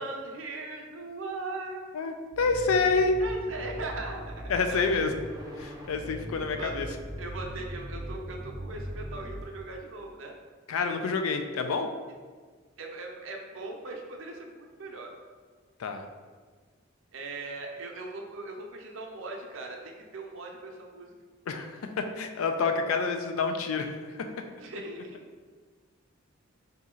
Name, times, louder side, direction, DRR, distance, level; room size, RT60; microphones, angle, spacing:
voice 1, 0.0-1.9 3.2-4.9 6.0-6.2 6.6-6.8 7.2-10.4 12.8-15.1 17.1-21.1 24.6-25.2, right 2 dB, 65° right, 2 dB, 0.6 m, -39 dB
voice 2, 1.9-3.2 4.5-5.1 5.6-6.9 10.7-11.9 15.8-16.0 21.5-24.5, left 4 dB, 90° left, 6 dB, 0.4 m, -28 dB
sound 1, 2.3-9.4, equal, 20° right, 0.5 m, -40 dB
4.0 x 2.8 x 3.7 m, 1.5 s
head